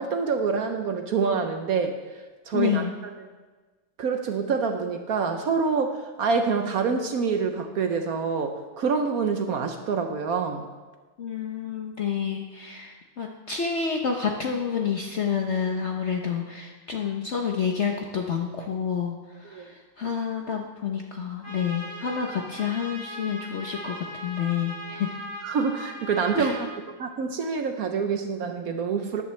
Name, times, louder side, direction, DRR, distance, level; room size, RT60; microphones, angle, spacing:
voice 1, 0.0-2.0 2.5-3.1 4.0-10.7 19.5-19.7 25.4-26.7 27.0-29.2, right 5 dB, 65° right, 5 dB, 1.0 m, -26 dB
voice 2, 2.5-2.9 11.2-19.1 19.4-25.1 26.3-26.5, left 7 dB, 55° left, 2 dB, 0.8 m, -29 dB
Trumpet, 21.4-26.8, equal, 10° left, 2.4 m, -39 dB
13.5 x 11.0 x 3.2 m, 1.3 s
omnidirectional pair, 2.0 m